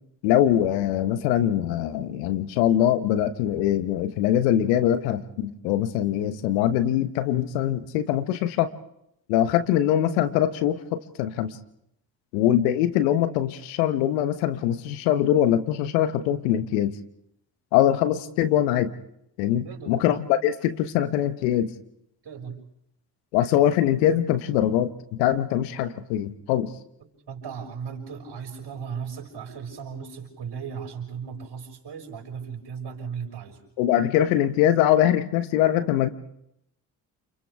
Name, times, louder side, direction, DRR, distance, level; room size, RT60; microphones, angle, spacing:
voice 1, 0.2-8.7 9.3-11.6 12.3-17.0 17.7-18.9 19.4-21.7 23.3-24.9 25.2-26.7 33.8-36.1, left 11 dB, 80° left, 11 dB, 1.2 m, -23 dB
voice 2, 19.6-19.9 22.2-22.6 27.0-33.6, right 6 dB, 50° right, 3 dB, 6.2 m, -36 dB
29.0 x 29.0 x 3.6 m, 0.77 s
hypercardioid pair, 45°, 50 cm